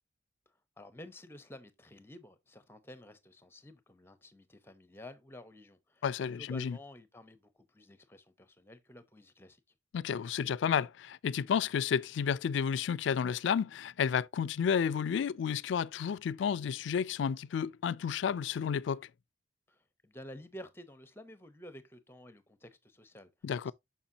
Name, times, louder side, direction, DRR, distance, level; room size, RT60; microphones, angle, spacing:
voice 1, 0.8-9.6 19.7-23.3 23.7-23.8, left 1 dB, 10° left, 0.7 m, -51 dB
voice 2, 6.0-6.8 9.9-19.1 23.4-23.7, left 7 dB, 65° left, 0.3 m, -31 dB
7.1 x 5.8 x 2.7 m
head